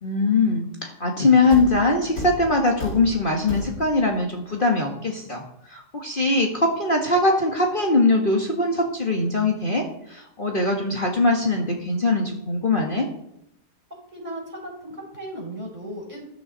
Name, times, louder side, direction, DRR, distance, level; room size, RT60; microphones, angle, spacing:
voice 1, 0.0-13.1, left 2 dB, 35° left, 0 dB, 1.8 m, -22 dB
Thump thud, 1.5-4.2, left 1 dB, 90° left, 2.9 m, -34 dB
voice 2, 14.1-16.3, right 1 dB, 30° right, -2 dB, 5.2 m, -36 dB
14.0 x 13.5 x 4.1 m, 0.77 s
omnidirectional pair, 1.5 m